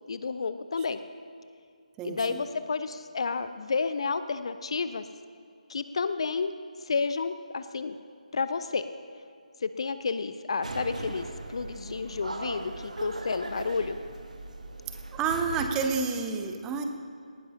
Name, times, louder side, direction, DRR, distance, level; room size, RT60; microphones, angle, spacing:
voice 1, 0.1-1.0 2.0-5.1 5.7-6.5 6.9-7.9 8.3-8.8 9.6-14.0, left 4 dB, 45° left, 12 dB, 0.5 m, -31 dB
voice 2, 2.0-2.4 15.1-16.8, right 5 dB, 10° right, 5 dB, 0.7 m, -29 dB
sound 1, 10.6-15.7, right 2 dB, 65° right, 1.3 m, -39 dB
18.5 x 16.0 x 2.8 m, 2.4 s
figure-of-eight pair, 150°, 4 cm